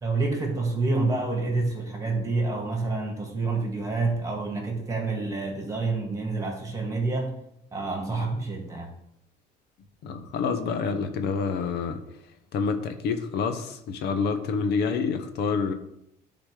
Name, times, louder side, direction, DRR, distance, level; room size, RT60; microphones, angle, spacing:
voice 1, 0.0-7.4 7.7-8.9, right 3 dB, 20° right, 1 dB, 2.3 m, -28 dB
voice 2, 10.0-12.0 12.5-15.7, left 5 dB, 75° left, 7 dB, 1.0 m, -27 dB
10.0 x 4.1 x 4.9 m, 0.77 s
cardioid pair, 110°, 17 cm